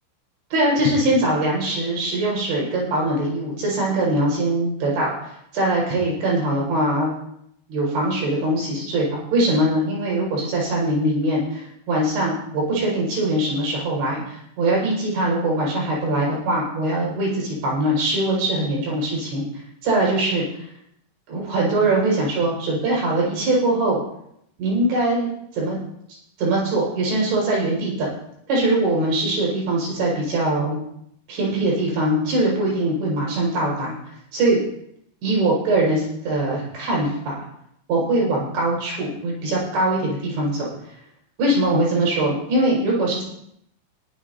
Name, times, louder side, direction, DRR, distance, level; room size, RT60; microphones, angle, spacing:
voice 1, 0.5-7.1 7.7-19.5 19.8-20.5 21.3-24.0 24.6-25.8 26.4-28.1 28.5-30.8 31.3-34.0 34.3-34.6 35.2-37.4 37.9-40.7 41.4-43.2, right 1 dB, 85° right, -3 dB, 7.6 m, -22 dB
21.0 x 12.0 x 2.8 m, 0.74 s
omnidirectional pair, 5.1 m